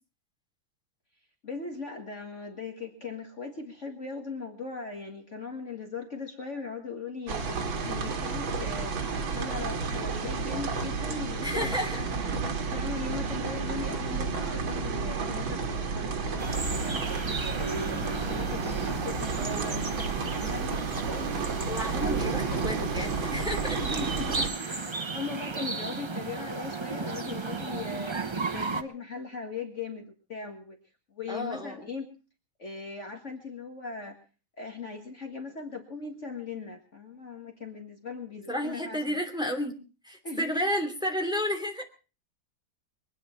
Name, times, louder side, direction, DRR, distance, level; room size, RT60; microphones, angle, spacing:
voice 1, 1.4-8.9 9.2-17.0 17.6-21.5 22.0-22.5 23.8-28.2 28.5-30.8 31.1-32.1 32.6-34.2 34.6-39.2 40.2-40.4, left 4 dB, 40° left, 2 dB, 2.1 m, -39 dB
sound 1, 7.3-24.5, right 4 dB, 85° right, 2.6 m, -31 dB
voice 2, 11.4-12.0 21.7-23.8 25.8-25.9 31.3-31.9 38.5-39.8 40.0-41.8, equal, ahead, 4 dB, 2.9 m, -31 dB
sound 2, 16.4-28.8, right 4 dB, 50° right, 0.3 m, -35 dB
23.5 x 9.8 x 5.8 m, 0.36 s
omnidirectional pair, 2.1 m